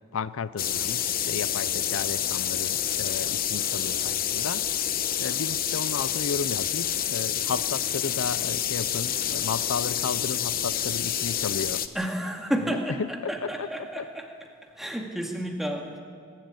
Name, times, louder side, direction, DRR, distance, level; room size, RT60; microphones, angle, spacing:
voice 1, 0.1-4.6 5.2-11.8 12.7-13.1 13.4-13.7 14.0-14.1, left 5 dB, 75° left, 16 dB, 0.5 m, -33 dB
sound 1, 0.6-11.9, left 10 dB, 40° left, 0.8 m, -28 dB
voice 2, 11.9-14.3 14.6-16.0, equal, ahead, 1 dB, 2.0 m, -31 dB
23.5 x 12.0 x 9.7 m, 2.2 s
head